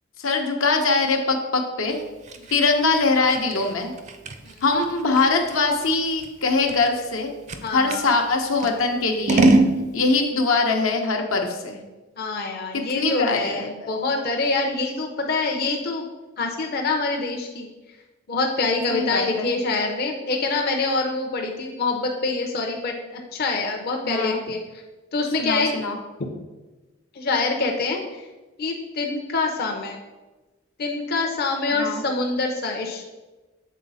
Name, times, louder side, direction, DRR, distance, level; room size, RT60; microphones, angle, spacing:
voice 1, 0.2-2.0 2.5-3.9 4.6-7.3 7.7-9.5 9.9-11.8 12.7-13.7 18.9-19.5 24.0-24.4 25.4-26.0 31.7-32.0, left 3 dB, 85° left, 3 dB, 0.9 m, -22 dB
Scissors, 1.9-8.1 8.6-9.8, right 2 dB, 35° right, 0.4 m, -24 dB
voice 2, 7.6-8.1 12.2-16.1 16.4-17.7 18.3-24.6 25.1-25.7 27.1-28.2 28.6-30.0 30.8-33.0, left 3 dB, 50° left, 2 dB, 0.6 m, -25 dB
7.4 x 4.0 x 4.1 m, 1.2 s
head